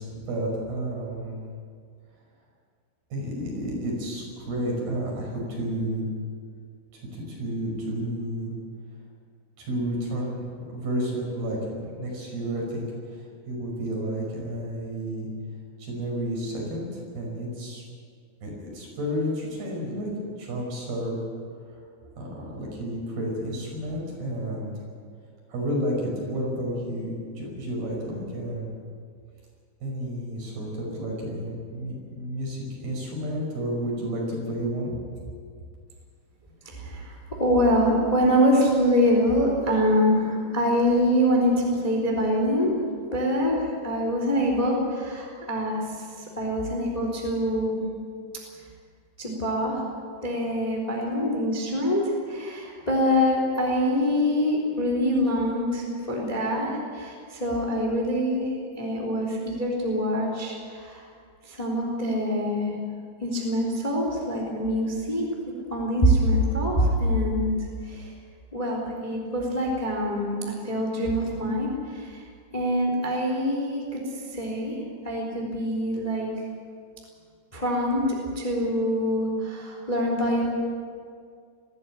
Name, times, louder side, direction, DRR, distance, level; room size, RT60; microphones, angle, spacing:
voice 1, 0.0-1.4 3.1-6.0 6.9-8.5 9.6-15.3 15.8-16.9 17.1-17.8 18.4-20.1 20.4-21.2 22.2-24.7 25.5-28.7 29.8-34.9, equal, 55° right, -2 dB, 7.4 m, -31 dB
voice 2, 36.6-37.1 37.4-42.7 43.1-46.1 46.4-47.8 49.2-49.8 50.2-61.0 61.4-62.7 63.2-65.2 65.7-67.6 67.8-68.1 68.5-72.2 72.5-74.8 75.0-76.3 77.5-78.0 78.3-80.5, equal, 10° left, -1 dB, 2.9 m, -25 dB
20.5 x 15.5 x 8.8 m, 2.1 s
omnidirectional pair, 5.5 m